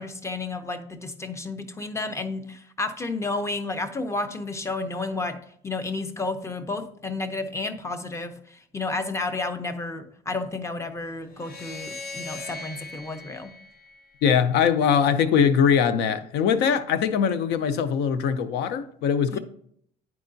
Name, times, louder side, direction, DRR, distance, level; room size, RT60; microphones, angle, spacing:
voice 1, 0.0-5.4 5.6-13.5 19.3-19.4, left 3 dB, 15° left, 0.6 m, -31 dB
sound 1, 11.3-14.6, left 3 dB, 65° left, 0.9 m, -40 dB
voice 2, 14.2-19.4, left 7 dB, 90° left, 0.5 m, -22 dB
9.6 x 4.7 x 2.6 m
cardioid pair, 110°, 17 cm